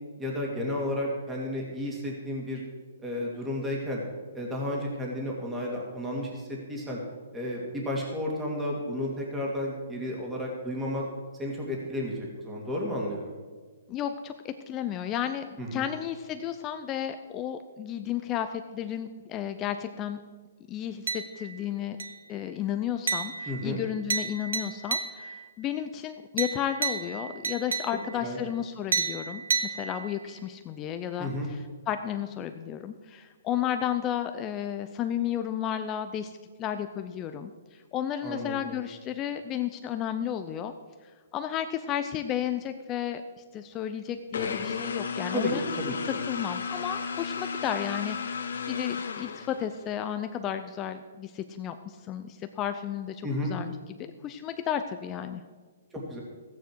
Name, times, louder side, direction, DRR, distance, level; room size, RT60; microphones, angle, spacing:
voice 1, 0.2-2.6 3.0-4.0 4.3-7.0 7.3-11.0 11.4-13.4 15.6-15.8 23.5-23.8 28.2-28.4 31.2-31.5 38.2-38.8 45.3-46.2 53.2-53.5 55.9-56.2, left 1 dB, 10° right, -2 dB, 2.5 m, -32 dB
voice 2, 13.9-20.2 20.7-22.0 22.3-31.6 31.9-36.3 36.6-40.7 41.3-45.6 46.1-55.4, left 10 dB, 25° left, 8 dB, 0.6 m, -33 dB
sound 1, 21.1-21.6 22.0-22.4 23.1-25.5 26.4-28.3 28.9-30.3, right 5 dB, 85° right, 1.0 m, -32 dB
sound 2, 44.3-49.9, left 5 dB, 75° left, 1.2 m, -33 dB
14.0 x 9.3 x 4.7 m, 1.5 s
hypercardioid pair, 150°, 0 cm